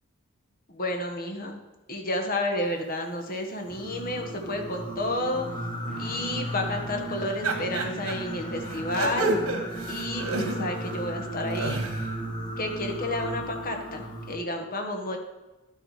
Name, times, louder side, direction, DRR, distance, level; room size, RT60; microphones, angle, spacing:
voice 1, 0.7-1.6 1.9-5.4 6.0-9.3 9.9-11.8 12.6-15.2, left 1 dB, 45° left, 3 dB, 1.3 m, -31 dB
Singing, 3.6-14.3, right 1 dB, 20° left, 1.5 m, -35 dB
Guitar, 5.8-13.5, right 1 dB, ahead, 2.3 m, -47 dB
sound 1, 7.4-8.1 8.7-10.9 11.3-12.1, right 2 dB, 85° right, 1.7 m, -30 dB
11.0 x 6.6 x 4.9 m, 1.1 s
head